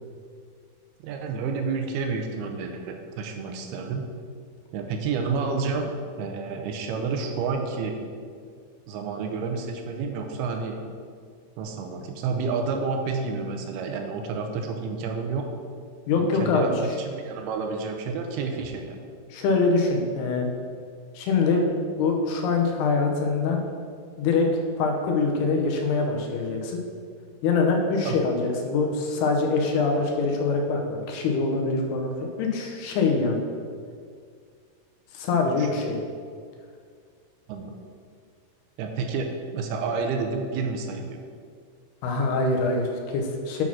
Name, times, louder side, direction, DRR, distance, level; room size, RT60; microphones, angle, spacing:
voice 1, 1.0-4.1 4.7-8.0 8.9-10.8 11.6-15.4 16.2-19.0 28.0-28.2 35.6-35.8 37.5-37.8 38.8-41.2, right 4 dB, 90° right, 4 dB, 2.7 m, -30 dB
voice 2, 16.1-16.7 19.3-20.5 21.1-21.7 22.0-23.6 24.2-24.5 24.8-26.8 27.4-33.4 35.1-36.0 42.0-43.6, left 4 dB, 90° left, 2 dB, 3.0 m, -24 dB
9.0 x 4.1 x 6.0 m, 2.1 s
omnidirectional pair, 4.5 m